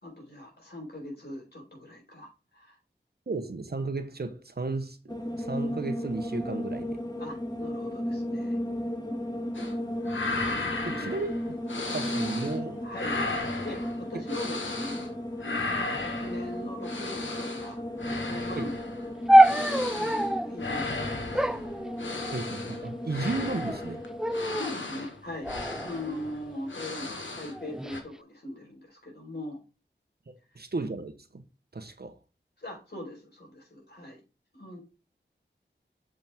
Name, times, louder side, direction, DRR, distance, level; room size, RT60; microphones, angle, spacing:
voice 1, 0.0-2.8 7.2-8.6 9.0-9.5 10.8-11.2 12.8-13.2 13.6-15.0 16.0-17.8 18.2-18.7 19.4-19.7 19.9-21.6 24.5-25.5 25.8-29.6 32.6-34.2 34.5-34.8, left 1 dB, 60° left, 4.2 m, -41 dB
voice 2, 3.3-6.9 10.8-11.3 11.8-12.8 14.1-14.2 18.5-18.7 22.3-24.0 30.3-31.4 31.7-32.2, right 3 dB, 55° right, 1.0 m, -34 dB
sound 1, 5.1-24.4, left 1 dB, 20° left, 1.4 m, -35 dB
sound 2, 9.5-9.8 10.0-12.6 12.9-15.1 15.4-27.6 27.9-28.0, left 3 dB, 80° left, 1.3 m, -36 dB
sound 3, 19.3-20.5 21.3-22.6 23.3-23.8 24.2-24.8 25.4-26.7 27.5-28.0, right 1 dB, 5° right, 0.3 m, -25 dB
7.1 x 5.2 x 3.5 m
wide cardioid pair, 40°, 19 cm